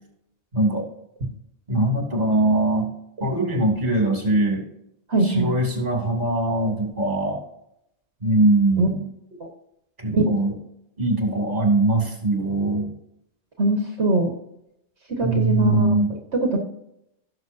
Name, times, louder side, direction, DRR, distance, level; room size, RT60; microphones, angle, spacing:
voice 1, 0.5-0.9 1.7-2.9 3.2-4.7 5.2-7.4 8.2-9.1 10.0-10.6 11.0-12.9 15.2-16.2, right 2 dB, 35° right, 2 dB, 3.0 m, -21 dB
voice 2, 5.1-5.5 8.8-8.9 10.1-10.3 13.6-14.3 15.1-15.9 16.4-16.6, right 2 dB, 75° right, 2 dB, 1.9 m, -21 dB
17.5 x 6.8 x 2.7 m, 0.78 s
omnidirectional pair, 1.2 m